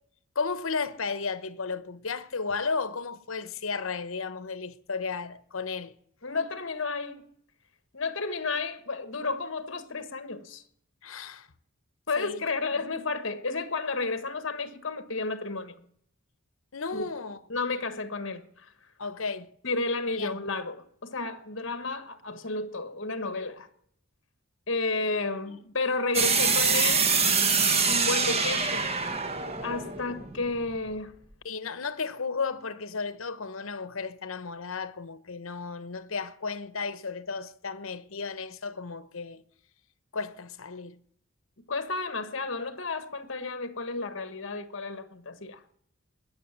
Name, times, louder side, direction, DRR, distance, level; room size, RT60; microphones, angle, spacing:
voice 1, 0.3-6.0 11.0-11.5 12.2-12.4 12.7-12.8 16.7-17.4 19.0-19.5 20.1-20.4 31.4-39.4 40.1-41.0, left 4 dB, 75° left, 1.0 m, -34 dB
voice 2, 6.2-7.2 7.9-10.6 12.1-15.8 16.9-17.1 17.5-18.7 19.6-23.7 24.7-27.1 27.8-28.9 29.6-31.2 41.7-45.7, left 3 dB, 60° left, 1.4 m, -32 dB
sound 1, 26.1-31.0, right 5 dB, 30° right, 1.4 m, -25 dB
20.5 x 7.6 x 7.2 m
head